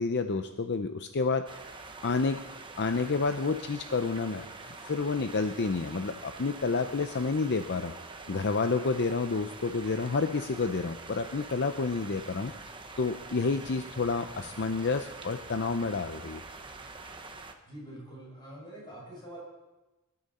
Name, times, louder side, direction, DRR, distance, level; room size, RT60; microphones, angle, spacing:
voice 1, 0.0-1.5 2.0-2.4 2.8-7.9 8.3-12.5 13.0-16.4, left 4 dB, 50° left, 8 dB, 0.6 m, -29 dB
sound 1, 1.5-17.5, right 3 dB, 20° right, 1.1 m, -45 dB
voice 2, 17.7-19.4, right 1 dB, 20° left, -4 dB, 6.7 m, -45 dB
22.0 x 13.0 x 4.3 m, 1.1 s
head